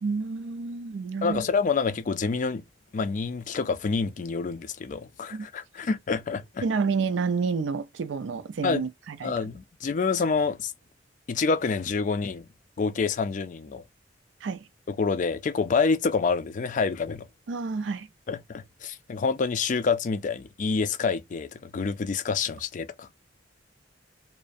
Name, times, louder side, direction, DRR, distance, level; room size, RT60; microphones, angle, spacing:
voice 1, 0.0-1.4 5.3-5.5 6.6-9.3 14.4-14.7 17.5-18.1, right 5 dB, 85° right, 0.4 m, -29 dB
voice 2, 1.2-2.6 2.9-6.6 8.6-8.9 9.2-10.7 11.3-12.5 12.8-13.8 14.9-17.3 18.3-23.1, left 4 dB, 45° left, 0.3 m, -27 dB
2.4 x 2.1 x 2.5 m
head